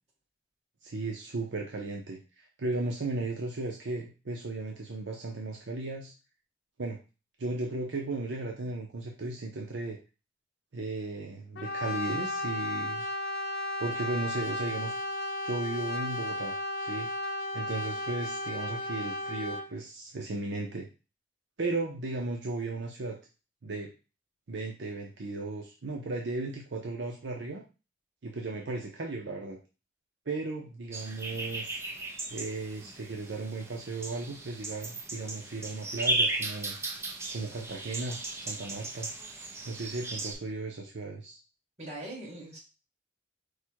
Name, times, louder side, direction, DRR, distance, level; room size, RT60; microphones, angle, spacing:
voice 1, 0.8-6.1 6.8-7.0 7.4-10.0 10.7-13.0 13.8-14.9 15.4-16.5 16.8-17.1 17.5-20.9 21.6-23.2 23.6-23.9 24.5-27.6 28.2-29.6 30.3-31.8 32.3-36.8 37.3-39.1 39.6-41.4, right 2 dB, 70° right, 0 dB, 0.7 m, -35 dB
Brass instrument, 11.6-19.7, left 1 dB, 55° left, 0.5 m, -34 dB
sound 1, 30.9-40.3, right 2 dB, 15° right, 0.6 m, -36 dB
voice 2, 41.8-42.6, right 1 dB, 35° right, -4 dB, 1.9 m, -41 dB
4.8 x 2.3 x 4.6 m, 0.31 s
head